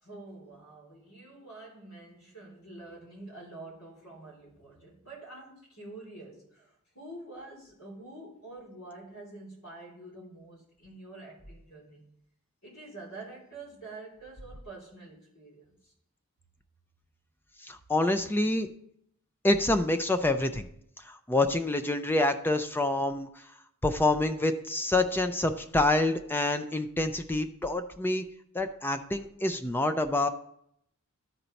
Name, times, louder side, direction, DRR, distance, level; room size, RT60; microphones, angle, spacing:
voice 1, 0.0-12.1 12.6-15.9, right 2 dB, 80° left, -4 dB, 3.4 m, -47 dB
voice 2, 17.6-18.7 19.4-20.7 21.1-23.3 23.8-28.2 28.5-30.3, left 2 dB, 10° left, 8 dB, 0.3 m, -27 dB
12.5 x 4.4 x 4.0 m, 0.73 s
head